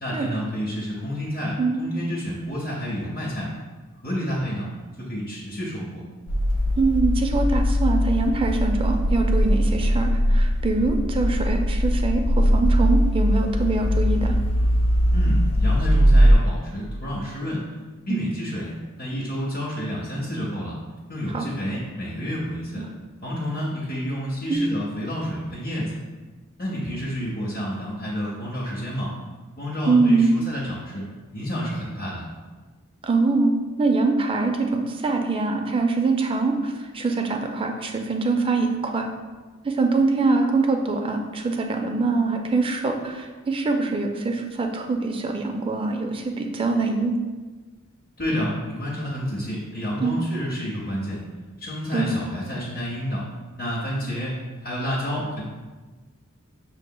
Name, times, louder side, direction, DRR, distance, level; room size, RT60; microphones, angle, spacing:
voice 1, 0.0-3.5 4.0-4.7 5.0-6.0 15.1-17.6 18.1-18.7 19.0-20.8 21.1-22.8 23.2-26.0 26.6-29.1 29.6-31.0 31.3-32.2 48.2-51.2 51.6-53.2 53.6-54.4 54.6-55.4, equal, 45° left, -6 dB, 0.7 m, -29 dB
sound 1, 6.3-16.3, equal, 85° left, 0.4 m, -20 dB
voice 2, 6.8-14.3 18.1-18.3 21.3-21.4 22.8-22.9 24.5-24.6 29.9-30.4 33.0-39.1 39.6-47.2 50.0-50.1 51.9-52.1, right 3 dB, 25° right, 4 dB, 0.4 m, -23 dB
6.0 x 2.8 x 2.2 m, 1.3 s
head